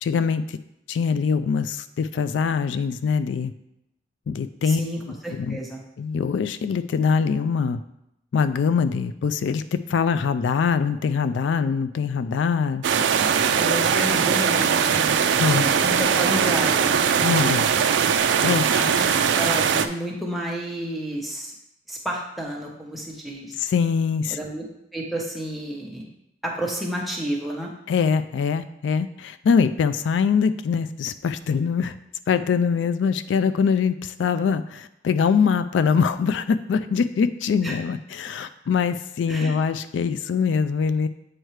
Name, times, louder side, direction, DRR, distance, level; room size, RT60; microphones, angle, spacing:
voice 1, 0.0-0.6 0.9-3.5 4.3-4.8 5.3-5.6 6.0-7.8 8.3-12.8 15.4-15.7 17.2-17.7 18.4-18.8 23.6-24.4 27.9-31.9 32.3-41.1, left 6 dB, 80° left, 12 dB, 0.3 m, -23 dB
voice 2, 4.6-5.8 13.6-16.9 18.7-21.5 21.9-23.5 24.3-24.6 24.9-26.1 26.4-27.7 37.6-37.7 39.3-39.5, equal, ahead, -2 dB, 1.0 m, -31 dB
sound 1, 12.8-19.9, right 7 dB, 80° right, 0.4 m, -20 dB
7.9 x 4.5 x 3.2 m, 0.83 s
head